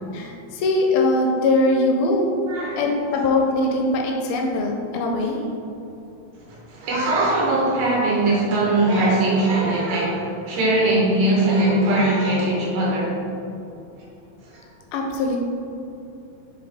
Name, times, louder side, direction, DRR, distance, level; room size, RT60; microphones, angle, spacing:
voice 1, 0.1-2.3 2.8-5.4 14.9-15.4, left 2 dB, 80° left, 1 dB, 2.3 m, -21 dB
voice 2, 2.5-2.8 6.7-13.1, right 2 dB, 70° right, -5 dB, 2.3 m, -20 dB
5.2 x 4.6 x 4.0 m, 2.7 s
omnidirectional pair, 4.4 m